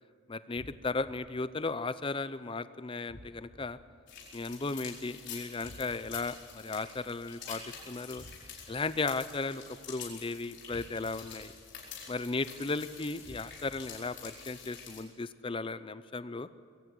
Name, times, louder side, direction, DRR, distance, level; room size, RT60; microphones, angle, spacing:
voice 1, 0.3-3.8 4.3-8.2 8.7-9.6 9.9-11.5 12.1-16.5, left 3 dB, 25° left, 14 dB, 0.5 m, -35 dB
sound 1, 0.6-1.1 3.1-3.7 5.6-6.2 8.2-8.7 10.7-11.3 13.2-13.8, equal, 80° left, 4.5 m, -51 dB
sound 2, 4.1-15.0, left 6 dB, 55° left, 4.8 m, -47 dB
21.5 x 16.5 x 7.7 m, 2.6 s
head